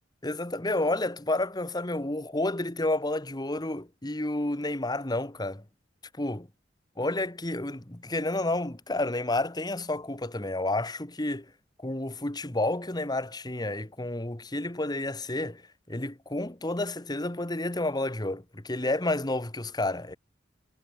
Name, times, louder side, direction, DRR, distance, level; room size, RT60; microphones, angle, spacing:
voice 1, 0.2-5.6 6.2-6.5 7.0-11.5 11.8-15.6 15.9-20.2, left 2 dB, 20° left, 1.5 m, -30 dB
head